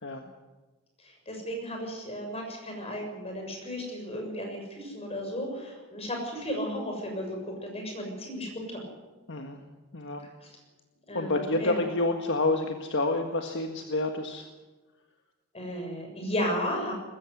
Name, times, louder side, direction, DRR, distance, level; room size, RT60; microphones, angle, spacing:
voice 1, 1.0-8.8 11.1-11.8 15.5-16.9, equal, 25° left, 2 dB, 6.8 m, -34 dB
voice 2, 9.3-9.6 9.9-10.3 11.1-14.5 16.2-16.3, left 2 dB, 55° left, 4 dB, 1.6 m, -29 dB
20.5 x 15.0 x 9.9 m, 1.2 s
head